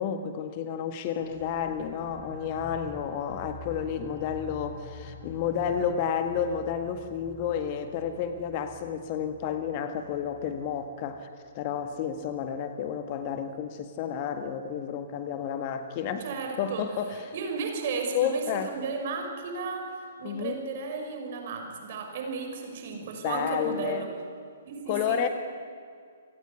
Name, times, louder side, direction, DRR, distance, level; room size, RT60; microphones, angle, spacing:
voice 1, 0.0-16.3 16.6-17.3 18.1-18.7 20.2-20.6 23.2-24.1 24.9-25.3, left 8 dB, 35° left, 8 dB, 1.8 m, -31 dB
sound 1, 1.2-12.5, equal, ahead, 5.8 m, -47 dB
voice 2, 16.2-16.9 17.3-19.9 20.2-24.1 24.6-25.2, right 4 dB, 45° right, 3 dB, 6.0 m, -34 dB
29.0 x 18.5 x 9.9 m, 2.2 s
figure-of-eight pair, 120°, 0 cm